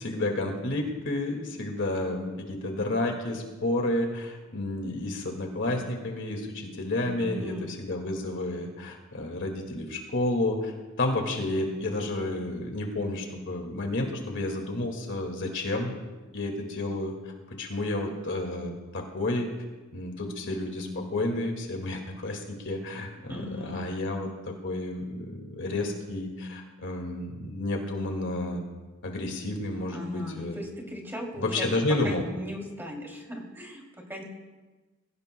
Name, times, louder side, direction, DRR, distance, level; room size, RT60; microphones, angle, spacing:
voice 1, 0.0-10.7 11.0-15.9 16.3-19.5 19.9-28.6 29.0-30.6 31.4-32.3, left 2 dB, 55° left, 2 dB, 2.0 m, -31 dB
voice 2, 7.2-7.7 23.3-23.9 29.9-31.7 32.0-34.2, equal, 10° right, -1 dB, 2.8 m, -38 dB
23.0 x 16.0 x 2.2 m, 1.2 s
head